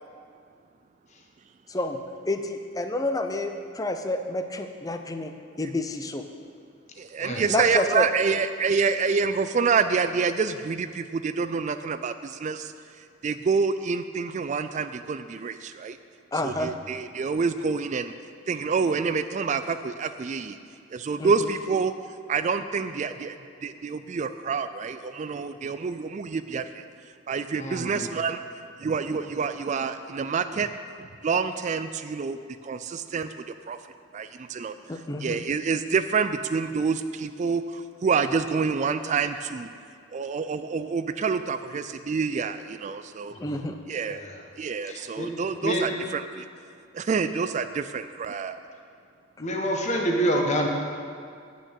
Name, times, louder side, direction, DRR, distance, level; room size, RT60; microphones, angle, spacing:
voice 1, 1.7-2.0 2.3-5.3 5.6-6.2 7.5-8.1 16.3-16.7 21.2-21.5 34.9-35.4 43.4-43.8, left 2 dB, 20° left, 7 dB, 0.6 m, -29 dB
voice 2, 7.0-12.7 13.2-16.0 16.4-18.1 18.5-20.6 20.9-21.9 22.3-23.4 23.6-26.8 27.3-28.4 28.8-30.7 31.0-33.8 34.1-34.7 35.2-39.7 40.1-43.3 43.9-44.2 44.6-46.5 46.9-48.6, right 5 dB, 35° right, 11 dB, 0.3 m, -27 dB
voice 3, 27.6-28.1 43.3-43.6 44.1-44.4 44.8-45.3 45.6-46.0 49.4-50.7, right 1 dB, 35° left, 1 dB, 1.3 m, -27 dB
8.8 x 6.3 x 8.3 m, 2.3 s
head